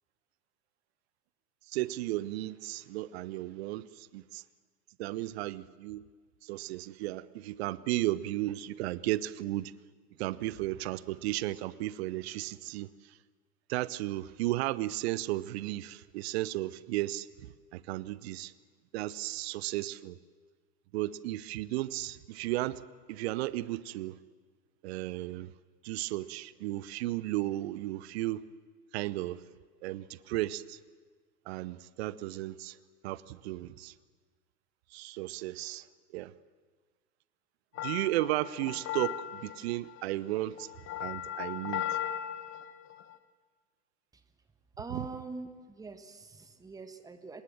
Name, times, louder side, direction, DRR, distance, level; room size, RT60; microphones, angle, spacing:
voice 1, 1.7-4.4 5.0-6.1 6.4-9.7 10.2-12.9 13.7-17.3 17.7-18.5 18.9-20.2 20.9-22.8 23.1-24.2 24.8-25.5 25.8-28.4 28.9-29.4 29.8-30.8 31.5-32.8 33.0-33.9 34.9-35.9 36.1-36.3 37.8-40.7 41.0-41.9 44.9-45.1, right 16 dB, 40° right, 0.8 m, -34 dB
sound 1, 37.8-43.2, left 11 dB, 25° left, 1.1 m, -37 dB
voice 2, 44.8-47.4, right 3 dB, 5° right, 1.4 m, -43 dB
25.0 x 20.5 x 7.6 m
figure-of-eight pair, 90°, 48 cm